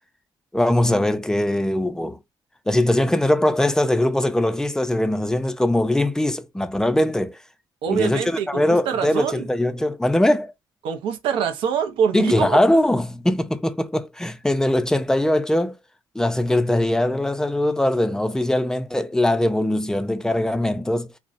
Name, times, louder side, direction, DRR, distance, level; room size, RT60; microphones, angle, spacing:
voice 1, 0.5-2.2 2.7-7.4 7.9-10.5 12.1-15.7 16.2-21.1, left 1 dB, 5° left, 0.3 m, -21 dB
voice 2, 7.8-9.5 10.8-12.6, right 7 dB, 85° right, 0.5 m, -24 dB
2.5 x 2.0 x 2.4 m
cardioid pair, 95°, 9 cm